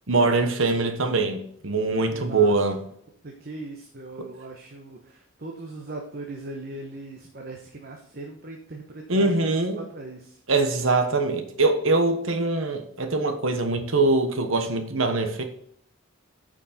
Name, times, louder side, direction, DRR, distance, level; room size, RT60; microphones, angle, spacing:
voice 1, 0.1-2.8 9.1-9.8 10.5-15.4, right 3 dB, 70° right, 6 dB, 1.3 m, -23 dB
voice 2, 2.1-2.6 3.2-10.4, right 2 dB, 45° right, 1 dB, 1.1 m, -39 dB
8.8 x 5.3 x 4.3 m, 0.69 s
head